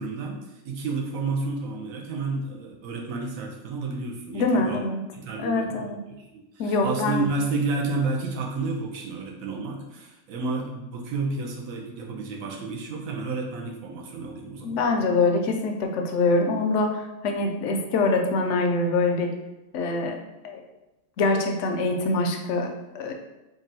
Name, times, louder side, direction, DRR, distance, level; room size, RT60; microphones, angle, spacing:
voice 1, 0.0-4.8 5.1-14.9, right 3 dB, 80° right, 0 dB, 1.1 m, -31 dB
voice 2, 4.3-5.0 5.4-6.0 6.6-7.3 14.6-19.3 19.7-20.2 20.4-20.6 21.2-23.1, left 3 dB, 70° left, 3 dB, 0.8 m, -24 dB
3.8 x 2.5 x 4.0 m, 0.99 s
omnidirectional pair, 1.4 m